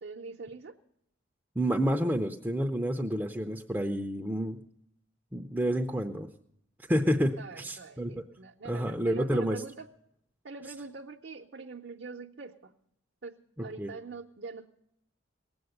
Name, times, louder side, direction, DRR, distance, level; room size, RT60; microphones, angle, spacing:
voice 1, 0.0-0.7 7.1-9.9 10.4-12.7 13.2-14.7, right 4 dB, 60° right, 1 dB, 0.7 m, -44 dB
voice 2, 1.6-4.6 5.3-6.3 6.9-8.2 8.6-9.6 13.6-13.9, equal, 10° right, 4 dB, 0.5 m, -29 dB
18.5 x 7.9 x 7.8 m, 0.75 s
head